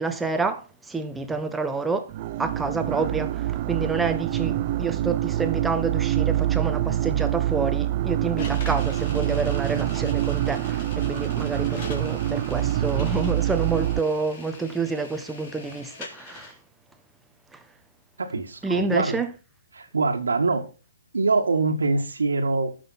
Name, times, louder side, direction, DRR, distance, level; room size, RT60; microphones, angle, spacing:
voice 1, 0.0-2.1 2.4-16.5 17.5-17.6 18.6-19.3, right 4 dB, 5° right, 1.1 m, -28 dB
sound 1, 2.1-14.0, right 13 dB, 40° right, 0.5 m, -25 dB
sound 2, 8.4-16.5, left 4 dB, 40° left, 3.7 m, -43 dB
voice 2, 18.2-19.2 19.7-20.6 21.1-22.8, right 3 dB, 85° right, 1.9 m, -24 dB
12.0 x 6.3 x 5.8 m
hypercardioid pair, 145°, 0 cm